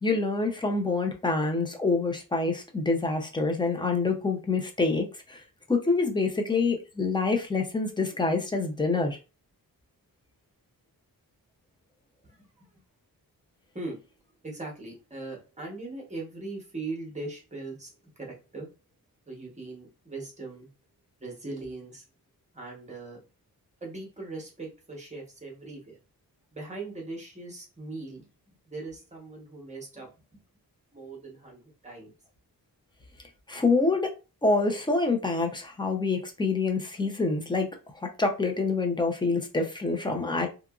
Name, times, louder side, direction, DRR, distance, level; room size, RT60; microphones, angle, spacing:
voice 1, 0.0-5.4 5.7-9.2 33.5-34.1 34.4-37.7 37.9-40.5, left 3 dB, 15° left, 0.4 m, -26 dB
voice 2, 12.2-12.7 13.7-14.0 14.4-18.7 19.3-20.7 21.2-22.0 22.5-23.2 23.8-26.0 26.5-28.3 28.7-30.4 30.9-32.1, right 3 dB, 20° right, 0.9 m, -40 dB
2.8 x 2.4 x 2.3 m
wide cardioid pair, 170°, 37 cm